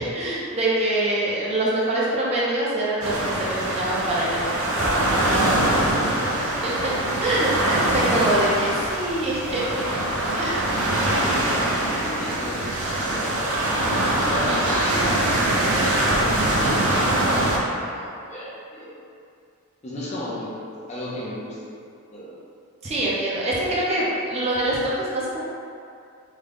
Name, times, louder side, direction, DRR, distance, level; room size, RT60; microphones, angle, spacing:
voice 1, 0.0-6.9 7.2-9.6 10.3-10.7 14.5-14.6 22.8-25.4, right 1 dB, 30° right, -7 dB, 0.5 m, -25 dB
sound 1, 3.0-17.6, right 1 dB, 75° right, 0.6 m, -23 dB
voice 2, 10.9-13.6 14.3-18.9 19.8-20.6 20.9-21.7 22.1-22.4, left 1 dB, 30° left, -7 dB, 0.5 m, -34 dB
3.7 x 2.2 x 3.4 m, 2.4 s
head